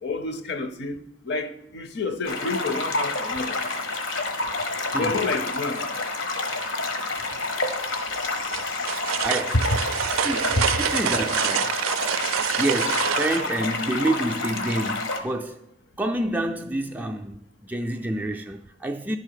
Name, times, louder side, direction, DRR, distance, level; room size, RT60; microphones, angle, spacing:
voice 1, 0.0-3.6 4.9-5.9 10.6-10.7, left 3 dB, 55° left, 0.6 m, -29 dB
sound 1, 2.2-15.2, left 3 dB, 75° left, 1.1 m, -29 dB
voice 2, 4.9-5.2 9.2-9.6 10.2-11.7 12.6-15.6 16.0-19.2, right 1 dB, 10° right, 0.3 m, -28 dB
sound 2, 8.5-13.5, right 10 dB, 85° right, 0.4 m, -27 dB
11.0 x 4.0 x 6.6 m
head